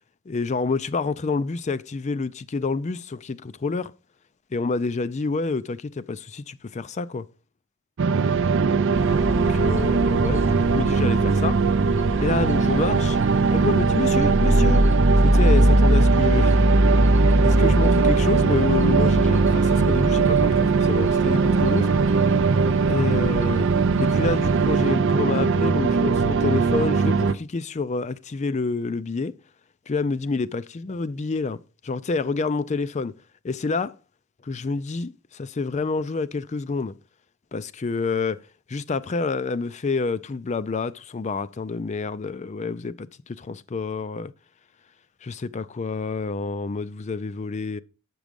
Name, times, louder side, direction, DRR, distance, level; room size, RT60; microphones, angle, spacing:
voice 1, 0.3-3.9 4.5-7.2 9.3-11.6 12.2-13.2 13.5-14.8 15.2-16.6 17.4-21.9 22.9-23.7 24.0-29.4 29.9-31.6 31.8-33.1 33.4-34.0 34.4-37.0 37.5-44.3 45.2-47.8, left 4 dB, 35° left, 0.4 m, -28 dB
sound 1, 8.0-27.3, right 5 dB, 60° right, 0.4 m, -20 dB
sound 2, 8.9-24.9, equal, 10° right, 1.0 m, -24 dB
8.2 x 6.2 x 5.1 m
head